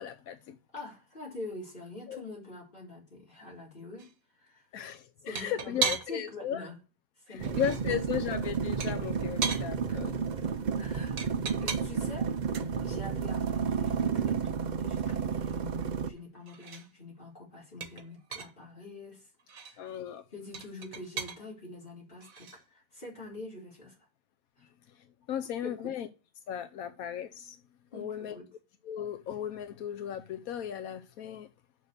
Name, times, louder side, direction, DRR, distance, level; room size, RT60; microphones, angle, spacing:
voice 1, 0.0-0.5 2.1-2.2 4.7-6.6 7.3-10.2 19.8-20.2 25.3-26.1 26.5-27.6 27.9-28.4 28.9-31.5, left 9 dB, 85° left, 1.2 m, -36 dB
voice 2, 0.7-4.1 4.4-4.7 5.2-6.8 7.3-8.1 9.9-10.0 10.4-10.5 10.8-11.3 11.6-19.3 19.6-19.9 20.3-24.0 24.6-24.7 25.6-25.9 27.9-28.5, left 2 dB, 40° left, 4.3 m, -45 dB
sound 1, 4.0-4.1 5.4-6.3 7.3-7.9 8.8-9.7 11.2-12.1 13.9-14.0 14.3-14.4 14.7-16.2 16.5-16.9 17.8-18.6 19.4-19.8 20.5-21.4 22.2-22.6, right 5 dB, 75° right, 1.6 m, -36 dB
sound 2, 7.4-16.1, right 6 dB, 50° right, 0.6 m, -31 dB
6.5 x 6.5 x 6.7 m
omnidirectional pair, 1.5 m